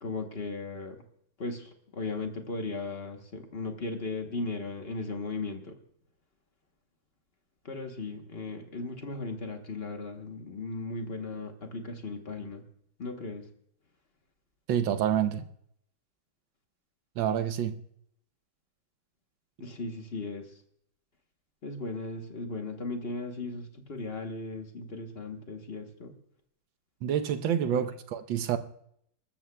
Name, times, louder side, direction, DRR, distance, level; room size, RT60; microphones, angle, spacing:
voice 1, 0.0-1.0 1.4-5.8 7.6-12.6 13.0-13.5 19.6-20.5 21.6-26.2 27.7-27.9, left 3 dB, 40° left, 1.0 m, -37 dB
voice 2, 14.7-15.5 17.2-17.7 27.0-28.6, right 9 dB, 80° right, 1.5 m, -28 dB
25.5 x 13.5 x 2.2 m
omnidirectional pair, 2.1 m